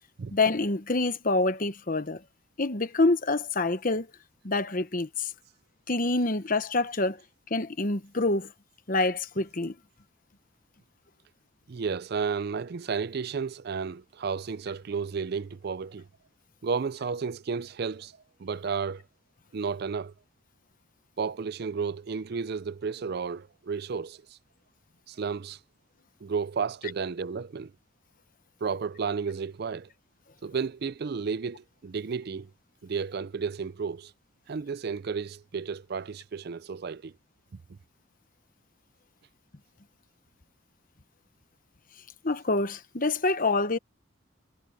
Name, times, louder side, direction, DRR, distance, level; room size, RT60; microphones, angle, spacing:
voice 1, 0.3-2.2 2.6-4.1 4.4-5.3 5.9-7.2 7.5-8.5 8.9-9.7 42.2-43.8, left 2 dB, 40° left, 1.1 m, -26 dB
voice 2, 11.7-16.1 16.6-18.1 18.4-19.0 19.5-20.1 21.2-24.2 25.1-25.6 26.2-27.7 28.6-29.9 30.4-32.5 32.8-34.1 34.5-37.1, right 5 dB, 50° right, 0.4 m, -32 dB
head